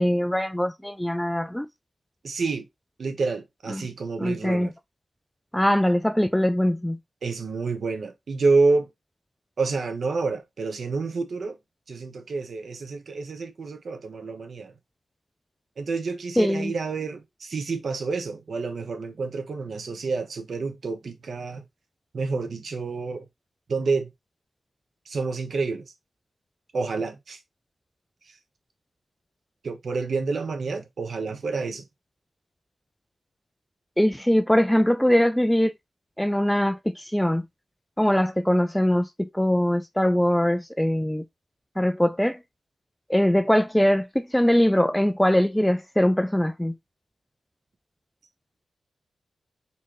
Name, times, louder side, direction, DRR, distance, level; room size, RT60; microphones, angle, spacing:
voice 1, 0.0-1.7 3.7-3.8 4.2-4.7 5.5-7.0 16.4-16.7 34.0-35.7 36.2-37.4 38.0-41.2 41.8-42.4 43.1-46.8, equal, 5° left, 0.3 m, -22 dB
voice 2, 2.2-2.6 3.0-4.7 7.2-8.9 9.6-11.6 11.9-14.7 15.8-21.6 22.1-23.2 23.7-24.1 25.1-25.8 26.7-27.4 29.6-31.8, right 4 dB, 60° right, 1.0 m, -28 dB
4.3 x 3.8 x 3.0 m
wide cardioid pair, 160°, 0 cm